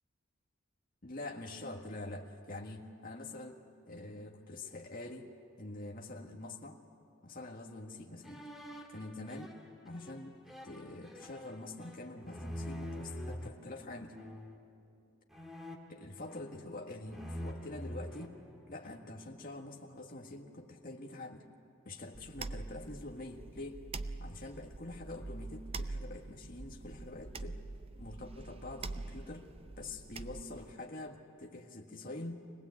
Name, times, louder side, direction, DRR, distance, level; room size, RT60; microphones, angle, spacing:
voice 1, 1.0-5.3 5.6-6.8 7.2-8.5 8.9-9.6 9.8-14.2 15.9-18.4 18.7-21.4 21.8-23.8 24.2-27.6 27.9-29.5 29.8-32.3, left 2 dB, 45° left, 2 dB, 1.7 m, -45 dB
sound 1, 8.2-13.5 14.1-14.6 15.3-16.8 17.1-19.0, equal, ahead, 1.9 m, -46 dB
sound 2, 22.1-30.7, right 3 dB, 30° right, 0.5 m, -44 dB
25.0 x 19.0 x 8.4 m, 2.5 s
head